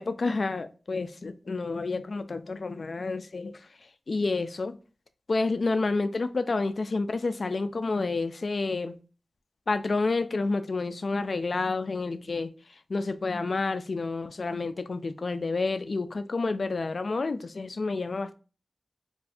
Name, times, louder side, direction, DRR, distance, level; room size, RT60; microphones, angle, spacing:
voice 1, 0.0-3.5 4.1-4.8 5.3-8.9 9.7-12.5 12.9-18.3, left 3 dB, 60° left, 0.3 m, -29 dB
2.5 x 2.3 x 4.1 m
wide cardioid pair, 80°, 0 cm